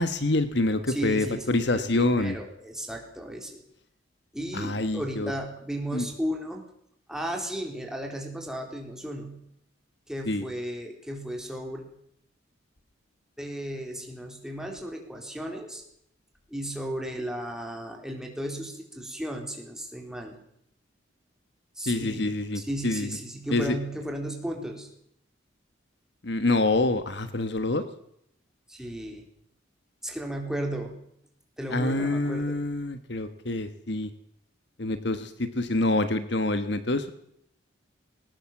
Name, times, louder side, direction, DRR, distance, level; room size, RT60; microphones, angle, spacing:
voice 1, 0.0-2.3 4.5-5.3 5.9-6.0 10.3-10.4 21.9-23.1 23.5-23.7 26.2-27.8 31.7-34.1 34.8-37.1, left 2 dB, 55° left, 11 dB, 1.3 m, -26 dB
voice 2, 0.9-3.6 4.3-6.6 7.1-9.4 10.1-11.8 13.4-15.8 16.5-20.4 21.8-24.9 28.7-29.2 30.0-31.0 31.6-32.6, right 1 dB, 5° right, 1 dB, 3.8 m, -35 dB
20.5 x 18.5 x 7.3 m, 0.73 s
head